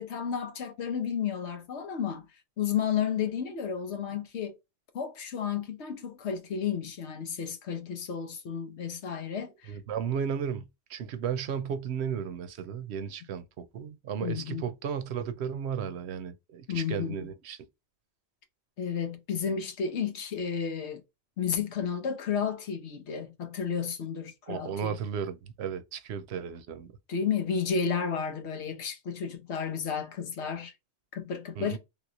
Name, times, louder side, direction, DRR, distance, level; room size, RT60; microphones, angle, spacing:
voice 1, 0.0-2.3 2.6-4.6 4.9-9.7 14.2-14.7 16.7-17.3 18.8-21.0 21.4-25.0 27.1-30.7 31.1-31.8, left 7 dB, 90° left, 1.1 m, -32 dB
voice 2, 9.7-17.6 24.5-26.9 31.6-31.8, right 7 dB, 80° right, 0.9 m, -34 dB
3.4 x 3.0 x 2.4 m
omnidirectional pair, 1.1 m